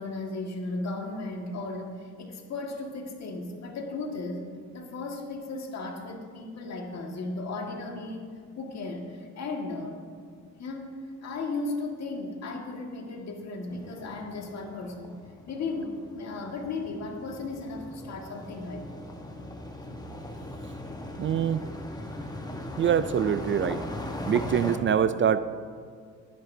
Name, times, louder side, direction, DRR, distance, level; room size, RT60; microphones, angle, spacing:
voice 1, 0.0-4.5 4.7-8.2 8.6-10.0 10.6-15.2 15.5-18.9, left 3 dB, 60° left, 2 dB, 1.9 m, -35 dB
sound 1, 13.7-24.8, left 1 dB, 15° left, 1.3 m, -39 dB
voice 2, 21.2-21.6 22.8-23.8 24.3-25.4, right 8 dB, 40° right, 13 dB, 0.4 m, -24 dB
19.0 x 9.7 x 2.7 m, 2.1 s
cardioid pair, 90°, 30 cm